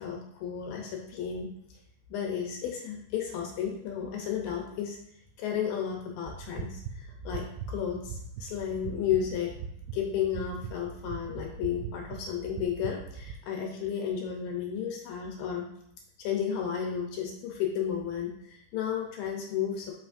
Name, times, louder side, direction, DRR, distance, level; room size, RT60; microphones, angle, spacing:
voice 1, 0.0-1.5 2.1-5.0 5.4-9.5 9.9-15.7 16.2-19.9, left 8 dB, 75° left, 1 dB, 2.3 m, -33 dB
sound 1, 6.3-13.3, right 6 dB, 90° right, 2.5 m, -41 dB
7.4 x 5.6 x 2.6 m, 0.75 s
omnidirectional pair, 4.3 m